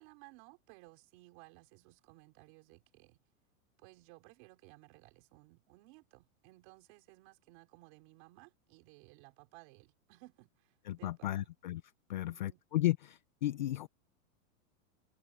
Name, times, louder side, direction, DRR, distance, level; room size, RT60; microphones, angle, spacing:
voice 1, 0.0-3.2 3.8-11.5 12.1-12.6, right 24 dB, 35° right, 5.0 m, -59 dB
voice 2, 10.9-11.8 12.1-13.9, left 15 dB, 35° left, 0.4 m, -34 dB
supercardioid pair, 180°, 42 cm